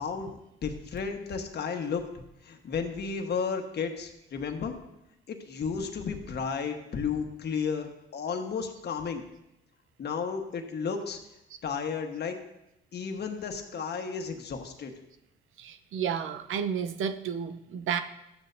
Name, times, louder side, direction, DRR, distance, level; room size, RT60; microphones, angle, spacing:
voice 1, 0.0-2.1 2.4-4.8 5.3-9.3 10.0-11.2 11.6-12.4 12.9-14.9, left 5 dB, 50° left, 4 dB, 1.3 m, -33 dB
voice 2, 15.6-18.0, right 7 dB, 70° right, 10 dB, 0.7 m, -31 dB
13.5 x 8.9 x 2.7 m, 0.87 s
cardioid pair, 100°, 21 cm